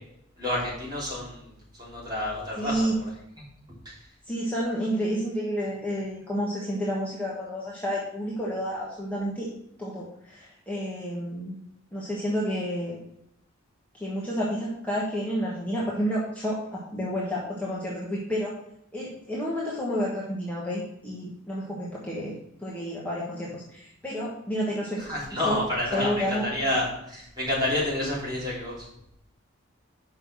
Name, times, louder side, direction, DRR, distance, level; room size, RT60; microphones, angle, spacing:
voice 1, 0.4-2.9 25.0-26.1 26.4-28.7, left 1 dB, 20° right, -7 dB, 3.3 m, -29 dB
voice 2, 2.6-3.0 4.2-9.5 9.8-11.5 11.9-13.0 13.9-18.5 18.9-22.3 22.6-25.6 25.9-26.5, equal, 10° left, -6 dB, 1.3 m, -30 dB
5.8 x 5.6 x 6.0 m, 0.78 s
head